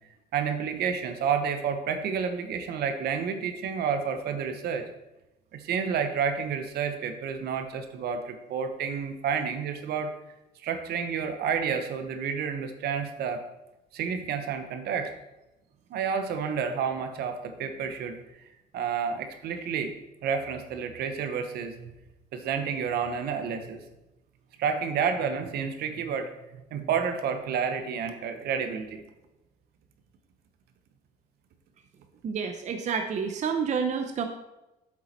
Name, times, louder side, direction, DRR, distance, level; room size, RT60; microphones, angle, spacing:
voice 1, 0.3-4.9 5.5-10.1 10.6-13.4 13.9-15.1 15.9-18.4 18.7-19.9 20.2-21.9 22.3-23.8 24.6-29.0, right 6 dB, 70° right, 7 dB, 1.1 m, -30 dB
voice 2, 32.2-34.3, right 6 dB, 45° right, 6 dB, 0.7 m, -29 dB
8.4 x 7.3 x 4.4 m, 0.97 s
cardioid pair, 110°, 17 cm